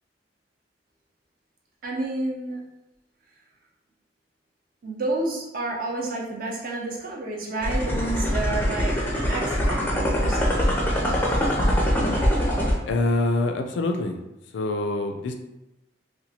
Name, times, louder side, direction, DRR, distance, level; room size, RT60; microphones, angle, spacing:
voice 1, 1.8-2.6 4.8-9.0 9.3-10.7, right 2 dB, 50° right, -2 dB, 0.6 m, -30 dB
sound 1, 7.6-12.8, equal, 10° left, 0.4 m, -23 dB
voice 2, 12.8-14.2 14.5-15.3, left 2 dB, 80° left, 5 dB, 0.3 m, -25 dB
2.9 x 2.2 x 2.7 m, 0.96 s
head